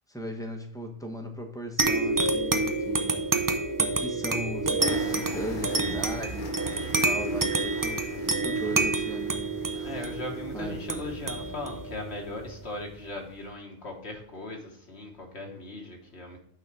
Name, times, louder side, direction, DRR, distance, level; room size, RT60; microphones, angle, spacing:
voice 1, 0.1-3.2 3.8-10.0 10.5-10.8, right 1 dB, 5° left, 3 dB, 0.9 m, -38 dB
sound 1, 1.8-12.9, right 3 dB, 30° right, 0.3 m, -28 dB
sound 2, 4.8-11.5, left 3 dB, 45° left, 1.0 m, -42 dB
voice 2, 6.8-7.2 9.8-16.4, left 2 dB, 65° left, 1 dB, 1.5 m, -38 dB
8.8 x 3.9 x 4.6 m, 0.71 s
omnidirectional pair, 1.2 m